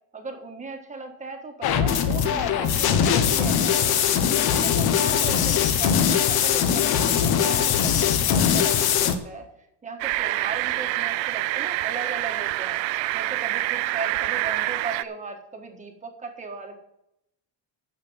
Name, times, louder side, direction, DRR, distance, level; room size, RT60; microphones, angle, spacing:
voice 1, 0.1-4.1 4.5-9.5 9.8-12.8 13.1-16.8, right 4 dB, 15° right, 4 dB, 1.5 m, -37 dB
sound 1, 1.6-9.1, left 8 dB, 55° left, 1.2 m, -21 dB
sound 2, 10.0-15.0, right 17 dB, 85° right, 0.6 m, -26 dB
10.0 x 6.7 x 7.9 m, 0.84 s
cardioid pair, 175°, 44 cm